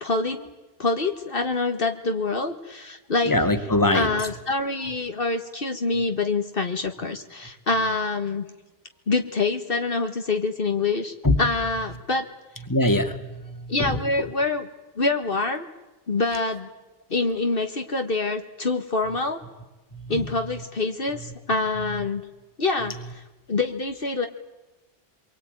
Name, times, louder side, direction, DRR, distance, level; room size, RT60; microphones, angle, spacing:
voice 1, 0.0-0.4 0.8-3.3 3.9-8.5 9.1-12.3 13.7-14.7 15.0-15.7 16.1-16.7 17.1-19.4 20.1-22.2 22.6-23.2 23.5-24.3, left 3 dB, 60° left, 6 dB, 1.7 m, -26 dB
voice 2, 3.3-4.1 11.2-11.4 12.7-13.2 13.4-14.0 19.9-20.1, left 1 dB, 20° left, 7 dB, 2.0 m, -22 dB
27.0 x 23.5 x 9.2 m, 1.1 s
omnidirectional pair, 1.1 m